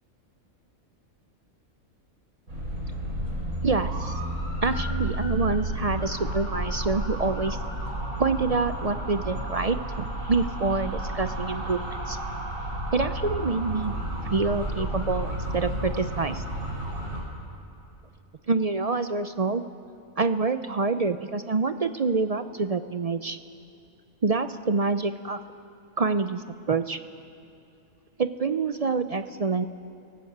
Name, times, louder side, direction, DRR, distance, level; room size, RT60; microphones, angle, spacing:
sound 1, 2.5-17.2, right 1 dB, 75° right, 5.3 m, -31 dB
voice 1, 3.6-4.2 4.6-7.6 8.2-12.2 12.9-13.9 14.2-16.4 18.5-19.6 20.2-23.4 24.2-25.4 26.0-27.0 28.2-29.7, right 4 dB, 55° right, 10 dB, 0.4 m, -26 dB
26.5 x 18.0 x 8.0 m, 2.7 s
omnidirectional pair, 1.4 m